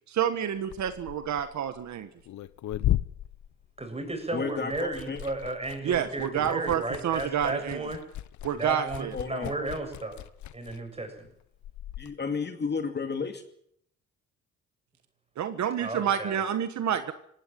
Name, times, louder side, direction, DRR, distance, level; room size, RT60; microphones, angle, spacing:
voice 1, 0.1-2.1 5.8-7.8 8.4-9.1 15.4-17.1, right 9 dB, 65° right, 10 dB, 1.5 m, -29 dB
Liquid, 0.6-4.3 4.5-12.1, left 13 dB, 70° left, 1.0 m, -36 dB
voice 2, 3.8-8.0 8.5-10.2 10.5-11.3 15.8-16.4, right 2 dB, 20° right, 5 dB, 7.4 m, -34 dB
voice 3, 4.3-5.2 9.1-9.5 12.0-13.4, left 5 dB, 35° left, 7 dB, 2.4 m, -32 dB
18.0 x 18.0 x 9.1 m, 0.70 s
cardioid pair, 90°, 30 cm